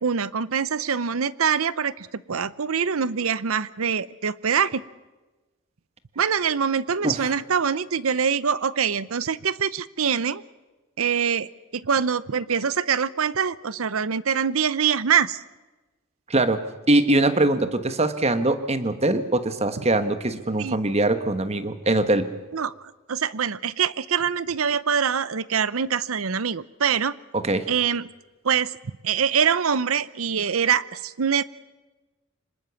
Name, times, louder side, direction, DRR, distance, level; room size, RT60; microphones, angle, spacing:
voice 1, 0.0-4.8 6.2-10.4 11.0-15.4 20.6-20.8 22.5-22.7 23.1-27.2 27.7-28.1 28.4-28.8 29.0-31.4, right 7 dB, 80° right, 18 dB, 0.7 m, -24 dB
voice 2, 16.3-22.3 27.3-27.7, right 2 dB, 30° right, 10 dB, 1.3 m, -22 dB
25.5 x 20.0 x 7.1 m, 1.2 s
head